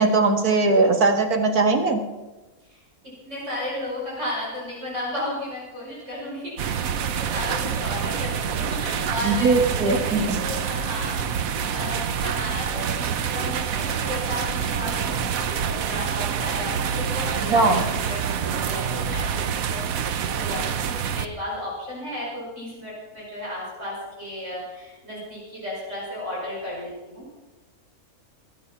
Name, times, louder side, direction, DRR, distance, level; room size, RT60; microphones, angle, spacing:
voice 1, 0.0-2.0 9.2-10.4 17.5-17.8, right 3 dB, 85° right, 4 dB, 2.2 m, -20 dB
voice 2, 3.2-27.4, left 1 dB, 50° right, -5 dB, 5.6 m, -34 dB
sound 1, 6.6-21.3, right 7 dB, 70° right, 1.2 m, -27 dB
22.5 x 9.0 x 5.8 m, 1.2 s
omnidirectional pair, 1.5 m